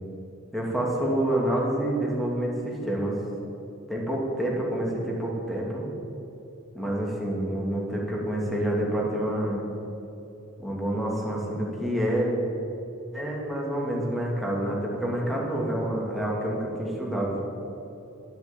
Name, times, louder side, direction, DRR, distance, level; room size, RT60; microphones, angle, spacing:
voice 1, 0.5-3.1 3.9-5.9 6.7-9.7 10.6-12.3 13.1-17.4, right 1 dB, ahead, -3 dB, 2.7 m, -28 dB
11.5 x 9.5 x 8.7 m, 3.0 s
head